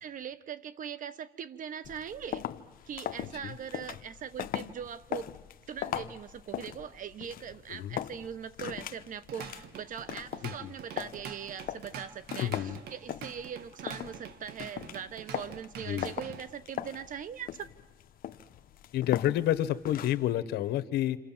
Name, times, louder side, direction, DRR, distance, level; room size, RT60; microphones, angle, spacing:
voice 1, 0.0-2.5 2.9-5.3 5.7-17.7, right 8 dB, 50° right, 15 dB, 1.3 m, -41 dB
sound 1, 1.8-20.3, left 11 dB, 55° left, 1.0 m, -40 dB
Drum kit / Drum, 9.1-16.4, right 8 dB, 70° right, 1.8 m, -46 dB
voice 2, 12.4-12.8 15.9-16.1 18.9-21.2, left 12 dB, 75° left, 13 dB, 1.3 m, -29 dB
28.5 x 27.0 x 7.5 m, 1.1 s
cardioid pair, 110°, 17 cm